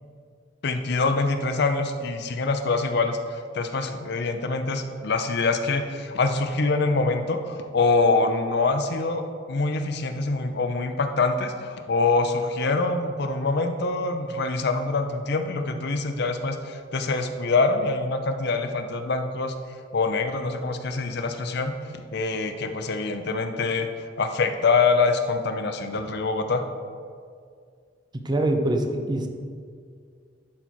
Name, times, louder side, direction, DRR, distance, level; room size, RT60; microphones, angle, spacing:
voice 1, 0.6-3.2 3.5-19.5 19.9-21.7 22.1-23.9 24.2-26.6, left 3 dB, 65° left, 7 dB, 0.6 m, -25 dB
voice 2, 28.1-29.3, right 1 dB, 25° right, 4 dB, 0.7 m, -24 dB
11.5 x 4.4 x 4.5 m, 2.1 s
head